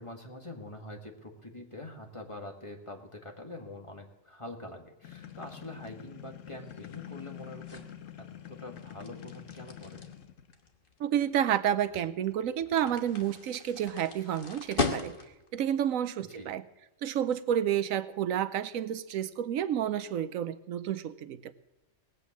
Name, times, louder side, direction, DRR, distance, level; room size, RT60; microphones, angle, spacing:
voice 1, 0.0-7.8 8.2-10.1 16.2-16.5, left 2 dB, 25° left, 2 dB, 1.7 m, -45 dB
sound 1, 5.0-10.7, left 10 dB, 70° left, 1.1 m, -47 dB
sound 2, 5.1-15.5, left 4 dB, 45° left, 1.4 m, -40 dB
voice 2, 11.0-15.1 15.5-16.6 17.0-21.5, right 10 dB, 85° right, 13 dB, 1.1 m, -30 dB
19.0 x 8.3 x 7.2 m, 1.0 s
omnidirectional pair, 1.4 m